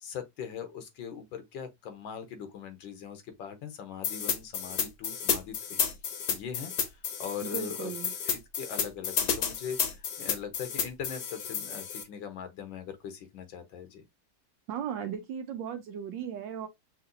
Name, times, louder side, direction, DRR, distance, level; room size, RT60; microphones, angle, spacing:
voice 1, 0.0-5.8 6.3-7.9 8.2-14.1, left 7 dB, 80° left, 1.6 m, -41 dB
sound 1, 4.0-12.0, left 7 dB, 60° left, 1.2 m, -31 dB
voice 2, 7.4-8.1 14.7-16.7, right 8 dB, 75° right, 1.2 m, -36 dB
5.7 x 2.9 x 2.6 m
omnidirectional pair, 2.1 m